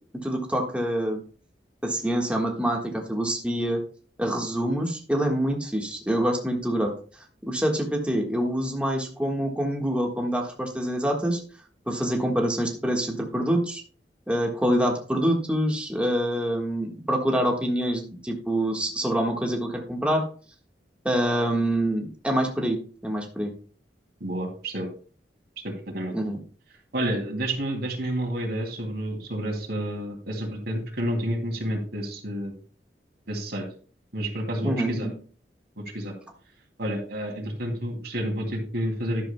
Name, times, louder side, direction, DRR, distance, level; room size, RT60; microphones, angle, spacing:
voice 1, 0.1-1.2 1.8-3.8 4.2-6.9 7.4-11.4 11.9-13.8 14.3-20.3 21.0-23.5 26.1-26.4 34.6-35.1, right 1 dB, 5° right, 0 dB, 1.5 m, -26 dB
voice 2, 24.2-24.9 25.6-26.1 26.9-32.5 33.3-33.6 34.1-35.1 35.9-36.1 36.8-39.3, right 1 dB, 65° right, 3 dB, 2.6 m, -29 dB
12.5 x 11.0 x 2.2 m, 0.40 s
head